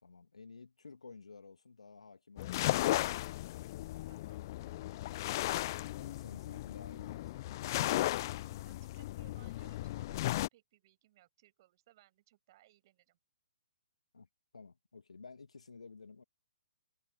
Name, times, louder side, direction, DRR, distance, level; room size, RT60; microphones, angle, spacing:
voice 1, 0.0-3.3 6.0-8.1 14.1-14.3 14.5-16.2, left 4 dB, 70° left, 1.4 m, -53 dB
sound 1, 2.4-10.5, left 16 dB, 35° left, 0.3 m, -36 dB
voice 2, 4.1-4.5 8.5-13.2, right 15 dB, 40° right, 5.6 m, -66 dB
figure-of-eight pair, 125°, 3 cm